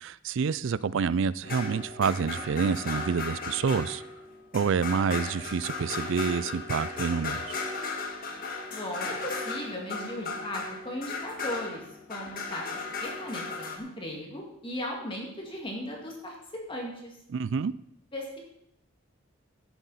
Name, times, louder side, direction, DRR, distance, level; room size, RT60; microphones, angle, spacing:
voice 1, 0.0-4.0 4.5-7.6 17.3-17.7, right 6 dB, 60° right, 19 dB, 0.4 m, -28 dB
sound 1, 1.4-13.8, left 3 dB, 40° left, 1.6 m, -36 dB
voice 2, 8.7-11.8 12.1-16.3 16.7-17.2 18.1-18.4, left 1 dB, 25° left, -1 dB, 2.1 m, -37 dB
16.5 x 7.9 x 4.1 m, 0.77 s
head